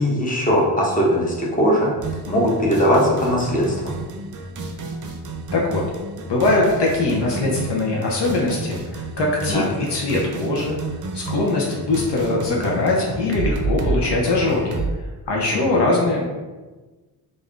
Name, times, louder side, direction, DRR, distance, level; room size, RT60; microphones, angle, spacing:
voice 1, 0.0-1.9 2.3-3.9 9.5-9.6 15.5-15.7, equal, 20° left, -4 dB, 1.1 m, -20 dB
sound 1, 2.0-14.9, right 3 dB, 45° right, 0.6 m, -30 dB
voice 2, 6.3-10.8 11.1-14.8 15.3-16.2, left 2 dB, 70° left, -2 dB, 0.8 m, -21 dB
3.4 x 2.6 x 3.6 m, 1.2 s
cardioid pair, 60°, 44 cm